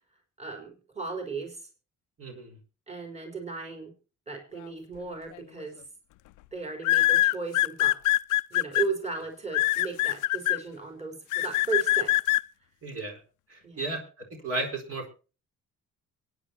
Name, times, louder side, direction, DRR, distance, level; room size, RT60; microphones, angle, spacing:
voice 1, 0.4-1.7 2.9-3.9 4.3-5.8 6.5-8.0 8.5-12.1 13.6-13.9, right 4 dB, 20° right, 2 dB, 4.1 m, -36 dB
voice 2, 2.2-2.6 12.8-13.2 13.5-14.0 14.4-15.0, right 2 dB, 50° right, 2 dB, 4.4 m, -33 dB
sound 1, 5.3-5.6 6.8-8.8 9.5-10.6 11.3-12.4, left 16 dB, 80° left, 0.6 m, -23 dB
24.0 x 9.6 x 2.9 m, 0.33 s
cardioid pair, 90°, 30 cm